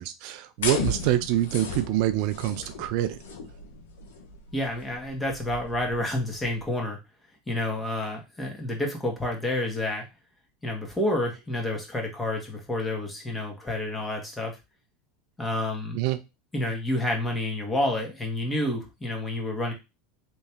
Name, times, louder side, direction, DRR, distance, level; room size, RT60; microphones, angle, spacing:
voice 1, 0.0-3.2 15.9-16.2, right 14 dB, 60° right, 11 dB, 0.4 m, -26 dB
sound 1, 0.6-6.6, left 4 dB, 80° left, 0.9 m, -36 dB
voice 2, 4.5-7.0 7.5-10.0 10.6-14.5 15.4-16.0 16.5-19.7, left 1 dB, 15° left, 1 dB, 1.6 m, -29 dB
3.2 x 3.1 x 3.4 m, 0.25 s
hypercardioid pair, 90°, 0 cm